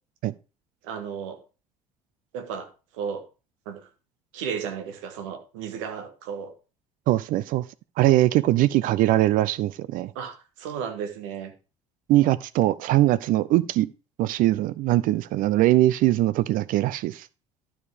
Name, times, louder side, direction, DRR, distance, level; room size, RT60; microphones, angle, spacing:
voice 1, 0.8-1.4 2.3-3.2 3.6-3.9 4.3-6.5 10.1-11.5, right 7 dB, 70° right, 1.5 m, -34 dB
voice 2, 7.1-7.6 8.0-10.1 12.1-13.9 14.2-17.3, right 15 dB, 55° right, 0.5 m, -21 dB
12.5 x 5.0 x 5.0 m
figure-of-eight pair, 60°, 17 cm